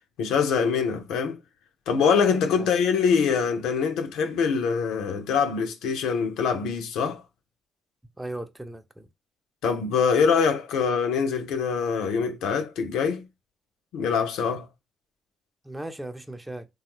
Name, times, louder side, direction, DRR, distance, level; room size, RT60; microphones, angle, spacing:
voice 1, 0.2-1.4 1.9-7.2 9.6-13.2 13.9-14.7, left 6 dB, 80° left, 0.5 m, -24 dB
voice 2, 8.2-9.1 15.6-16.7, right 1 dB, 15° right, 0.5 m, -37 dB
3.1 x 2.3 x 2.9 m
supercardioid pair, 60°, 0 cm